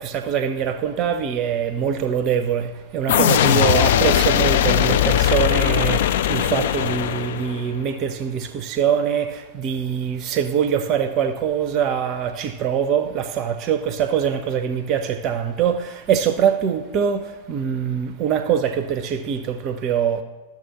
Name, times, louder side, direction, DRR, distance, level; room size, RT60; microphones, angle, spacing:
voice 1, 0.0-20.2, right 8 dB, 35° right, 0.5 m, -23 dB
sound 1, 3.1-7.8, left 11 dB, 55° left, 0.3 m, -19 dB
14.0 x 5.9 x 2.9 m
figure-of-eight pair, 90°, 0 cm